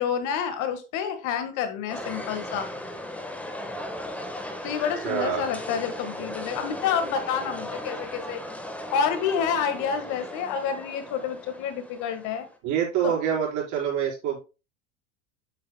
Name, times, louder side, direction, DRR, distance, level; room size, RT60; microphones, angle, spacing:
voice 1, 0.0-2.7 4.6-8.4 8.9-12.5 13.0-13.1, left 7 dB, 55° left, 9 dB, 1.6 m, -28 dB
sound 1, 1.9-12.6, left 1 dB, 5° left, 1.3 m, -37 dB
voice 2, 5.0-5.4 12.6-14.4, right 9 dB, 55° right, -2 dB, 4.6 m, -26 dB
8.4 x 8.0 x 2.2 m, 0.30 s
hypercardioid pair, 105°, 36 cm